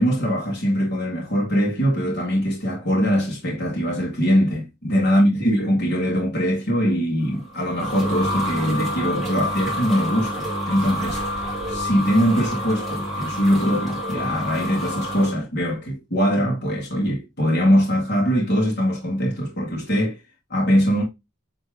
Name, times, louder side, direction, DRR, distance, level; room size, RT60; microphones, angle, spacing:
voice 1, 0.0-11.2 11.7-20.2 20.5-21.0, equal, 45° left, 1.9 m, -22 dB
sound 1, 7.3-15.3, equal, ahead, 2.4 m, -28 dB
8.5 x 3.4 x 3.4 m
head